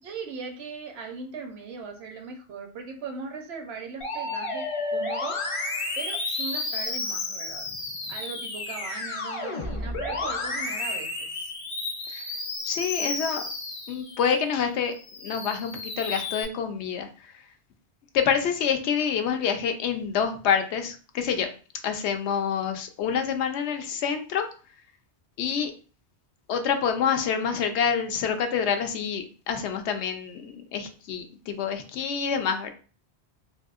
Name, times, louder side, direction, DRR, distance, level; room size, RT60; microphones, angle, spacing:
voice 1, 0.0-5.4 6.0-7.7 8.1-11.5, right 5 dB, 75° right, 4 dB, 0.9 m, -39 dB
Musical instrument, 4.0-14.4 14.9-16.4, left 3 dB, 35° left, 0.6 m, -32 dB
voice 2, 12.6-13.4 13.9-14.9 15.2-17.3 18.1-21.5 21.8-24.5 25.4-25.7 26.5-32.7, left 7 dB, 85° left, 6 dB, 0.8 m, -27 dB
3.3 x 2.6 x 2.4 m, 0.38 s
omnidirectional pair, 1.1 m